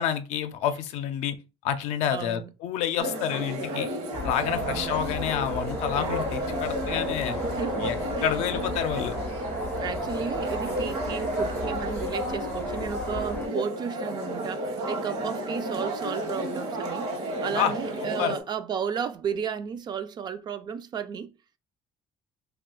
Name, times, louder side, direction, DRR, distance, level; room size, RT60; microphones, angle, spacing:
voice 1, 0.0-1.4 1.6-3.9 4.2-7.4 7.8-9.1 17.5-17.7 18.2-18.3, left 9 dB, 75° left, 0.5 m, -28 dB
voice 2, 2.1-2.5 4.6-5.0 7.4-8.4 9.7-21.3, right 7 dB, 40° right, 0.4 m, -33 dB
sound 1, 3.0-18.4, right 1 dB, 65° right, 1.0 m, -31 dB
sound 2, 4.1-13.5, left 4 dB, 15° left, 0.5 m, -38 dB
2.4 x 2.3 x 3.7 m
cardioid pair, 105°, 11 cm